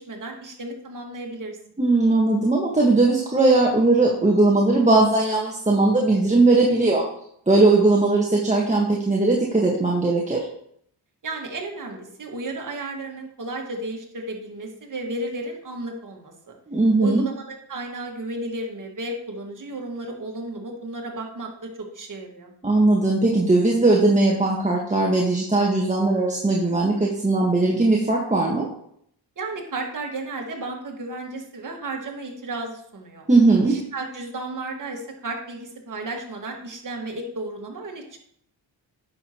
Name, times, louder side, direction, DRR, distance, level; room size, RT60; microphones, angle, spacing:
voice 1, 0.0-1.6 11.2-16.5 17.0-22.5 29.4-33.3 33.6-38.2, right 2 dB, 45° right, 1 dB, 2.0 m, -33 dB
voice 2, 1.8-7.0 7.5-10.4 16.7-17.2 22.6-28.7 33.3-33.8, right 2 dB, 15° right, -2 dB, 1.4 m, -19 dB
9.7 x 6.4 x 3.0 m, 0.68 s
cardioid pair, 80°, 42 cm